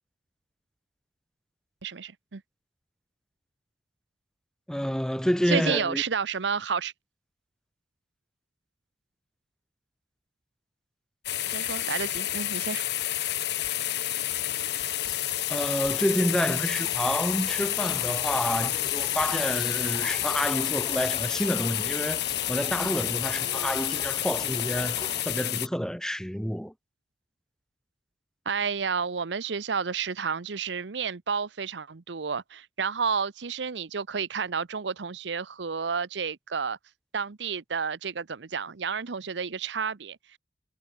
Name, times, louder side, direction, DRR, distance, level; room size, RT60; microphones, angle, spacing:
voice 1, 1.8-2.4 5.5-6.9 11.5-12.8 28.5-36.8 37.1-40.2, right 6 dB, 80° right, 0.8 m, -31 dB
voice 2, 4.7-6.0 15.5-26.7, equal, 5° left, 1.1 m, -29 dB
sound 1, 11.3-25.7, left 13 dB, 65° left, 1.0 m, -29 dB
sound 2, 14.4-25.2, left 3 dB, 25° left, 6.8 m, -42 dB
head